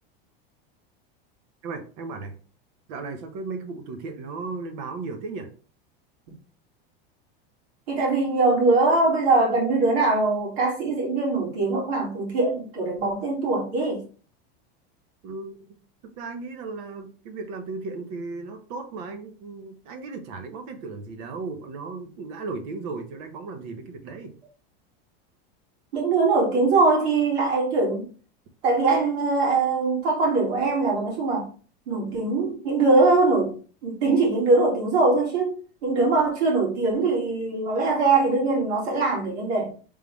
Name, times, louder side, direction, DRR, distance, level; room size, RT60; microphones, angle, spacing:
voice 1, 1.6-2.3 2.9-5.5 15.2-15.7 16.2-24.3, right 3 dB, 60° right, 1.0 m, -35 dB
voice 2, 7.9-14.0 25.9-28.1 28.6-31.5 31.9-33.6 33.8-39.7, right 3 dB, 85° right, 2.2 m, -22 dB
3.7 x 3.3 x 3.1 m
supercardioid pair, 130°, 30 cm